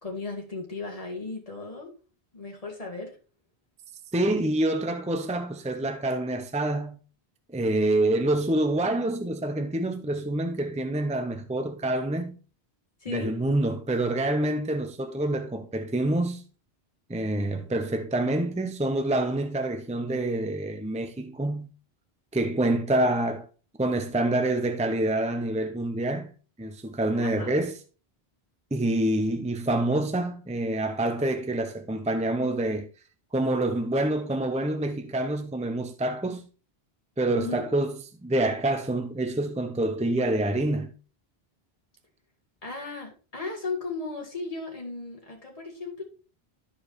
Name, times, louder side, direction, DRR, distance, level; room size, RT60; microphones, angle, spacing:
voice 1, 0.0-1.9 2.3-3.2 13.0-13.3 27.1-27.6 37.3-37.7 42.6-46.0, left 3 dB, 35° left, 1.9 m, -36 dB
voice 2, 4.1-7.0 7.5-12.4 13.1-16.4 17.1-21.7 22.3-23.4 23.8-26.3 26.6-27.7 28.7-32.9 33.3-36.5 37.2-37.9 38.2-40.9, right 1 dB, 10° right, 0.7 m, -27 dB
13.0 x 4.7 x 3.2 m
omnidirectional pair, 1.1 m